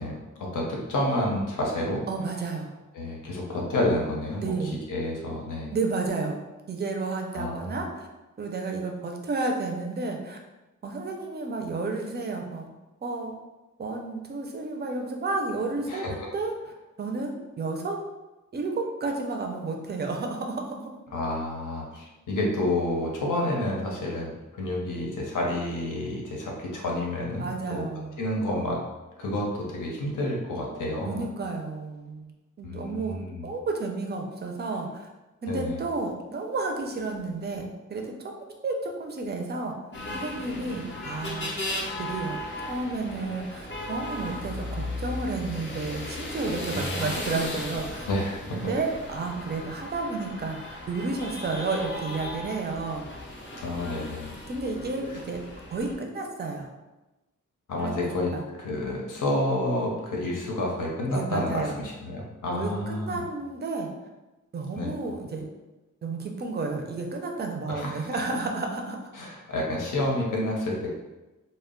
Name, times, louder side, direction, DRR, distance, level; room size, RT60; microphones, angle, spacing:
voice 1, 0.0-2.0 2.9-5.7 7.3-7.8 15.9-16.3 21.1-27.8 28.2-28.8 29.2-31.3 32.6-33.5 35.5-35.8 46.7-47.1 48.0-48.7 53.6-54.3 57.7-58.3 58.6-63.2 64.8-64.9 67.7-68.1 69.1-70.9, left 1 dB, 75° left, -2 dB, 0.7 m, -29 dB
voice 2, 2.1-2.7 4.4-4.8 5.7-8.1 8.4-10.4 10.8-13.4 13.8-16.5 17.0-18.0 18.5-20.9 27.4-28.2 31.0-32.3 32.6-35.1 35.4-37.6 37.9-38.1 38.6-39.7 40.1-41.5 42.0-42.4 42.7-48.1 48.5-50.6 50.9-53.2 54.5-55.4 55.7-56.7 57.8-58.4 61.1-61.8 62.5-63.9 64.5-65.5 66.0-69.1, right 3 dB, 35° right, 2 dB, 0.4 m, -31 dB
sound 1, 39.9-55.9, left 1 dB, 35° left, 0.5 m, -36 dB
2.2 x 2.0 x 3.6 m, 1.1 s
wide cardioid pair, 125°, 31 cm